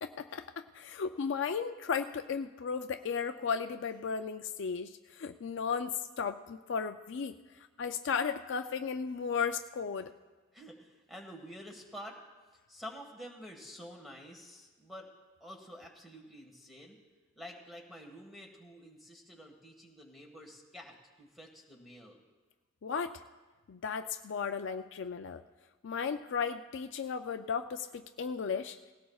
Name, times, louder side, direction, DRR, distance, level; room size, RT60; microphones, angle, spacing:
voice 1, 0.0-7.3 7.8-10.1 22.8-23.2 23.7-25.4 25.8-28.8, left 6 dB, 55° left, 8 dB, 0.4 m, -35 dB
voice 2, 10.5-12.2 12.7-15.1 15.4-17.0 17.4-22.2, equal, ahead, 1 dB, 1.6 m, -49 dB
19.0 x 17.0 x 2.4 m, 1.3 s
head